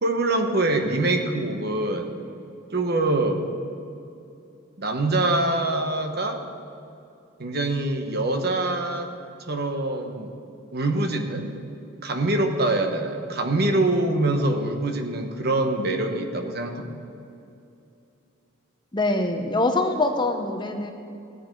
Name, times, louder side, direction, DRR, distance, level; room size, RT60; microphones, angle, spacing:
voice 1, 0.0-2.1 2.7-3.6 4.8-6.4 7.4-9.1 9.5-10.3 10.7-11.5 12.0-17.0, right 2 dB, 50° right, 5 dB, 1.1 m, -24 dB
voice 2, 18.9-20.9, left 2 dB, 20° left, 5 dB, 0.8 m, -24 dB
17.5 x 9.5 x 4.6 m, 2.6 s
head